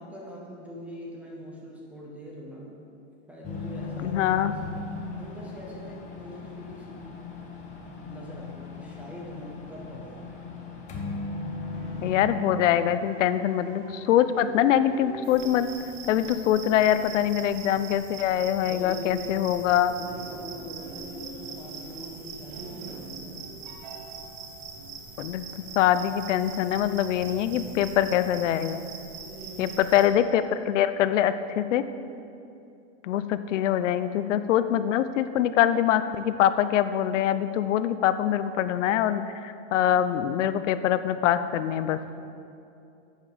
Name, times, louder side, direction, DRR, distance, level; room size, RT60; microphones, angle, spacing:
voice 1, 0.0-2.7 3.3-4.7 5.2-7.1 7.8-10.3 18.6-23.5 29.1-29.9, equal, 5° right, -3 dB, 0.4 m, -42 dB
sound 1, 3.4-12.2, left 4 dB, 20° left, 1.0 m, -38 dB
voice 2, 4.0-4.5 12.0-15.7 16.1-19.9 25.2-25.4 25.8-28.8 29.6-31.8 33.0-42.0, left 10 dB, 80° left, 12 dB, 0.7 m, -24 dB
sound 2, 11.7-28.3, right 3 dB, 45° right, 1.1 m, -48 dB
sound 3, 15.2-30.1, right 4 dB, 75° right, 1.9 m, -43 dB
10.5 x 8.3 x 5.0 m, 2.6 s
supercardioid pair, 165°, 37 cm